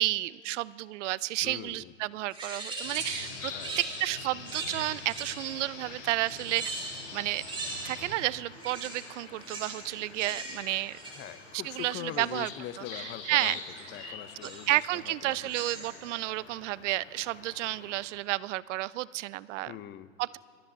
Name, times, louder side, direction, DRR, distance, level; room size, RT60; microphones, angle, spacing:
voice 1, 0.0-7.4 7.8-11.0 11.6-12.5 12.9-13.6 14.0-14.1 14.7-19.8 20.2-20.4, right 17 dB, 65° right, 20 dB, 0.5 m, -31 dB
voice 2, 1.4-1.9 3.5-3.8 11.1-13.6 13.9-15.4 15.8-15.9 19.7-20.1, left 12 dB, 25° left, 15 dB, 0.6 m, -42 dB
sound 1, 2.3-5.7 6.2-8.2 8.5-12.4 13.4-13.8 14.4-14.9 15.3-16.1, right 2 dB, 10° right, 3.2 m, -41 dB
sound 2, 2.8-8.2, left 4 dB, 80° left, 3.9 m, -46 dB
sound 3, 2.9-18.1, left 5 dB, 55° left, 3.5 m, -47 dB
26.0 x 13.0 x 2.7 m, 2.4 s
hypercardioid pair, 105°, 40 cm